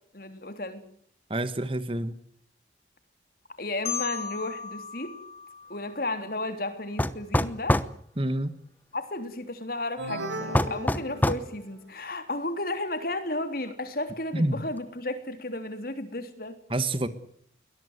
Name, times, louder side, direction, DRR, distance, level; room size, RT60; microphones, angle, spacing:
voice 1, 0.1-0.8 3.6-5.1 5.7-7.8 8.9-16.5, left 2 dB, 50° left, 9 dB, 3.3 m, -33 dB
voice 2, 1.3-2.2 8.2-8.6 14.3-14.6 16.7-17.1, right 1 dB, 30° right, 13 dB, 1.5 m, -27 dB
Marimba xylophone, 3.9-6.7, left 7 dB, 35° left, 3.4 m, -37 dB
sound 1, 7.0-7.9 10.5-11.5, left 1 dB, 10° left, 0.9 m, -24 dB
sound 2, 10.0-11.8, right 1 dB, 85° right, 4.1 m, -36 dB
22.0 x 21.0 x 8.1 m, 0.64 s
head